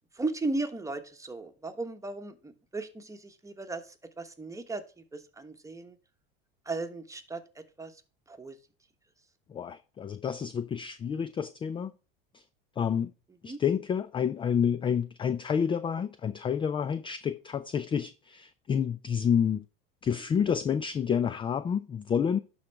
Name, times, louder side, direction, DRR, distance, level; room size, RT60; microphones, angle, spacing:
voice 1, 0.2-4.8 5.1-5.9 6.7-7.9 8.3-8.6 13.4-13.6, right 3 dB, 10° right, 1.2 m, -36 dB
voice 2, 9.5-11.9 12.3-12.4 12.8-13.1 13.4-19.6 20.0-22.4, left 7 dB, 20° left, 0.3 m, -29 dB
11.5 x 3.9 x 3.3 m
hypercardioid pair, 95°, 29 cm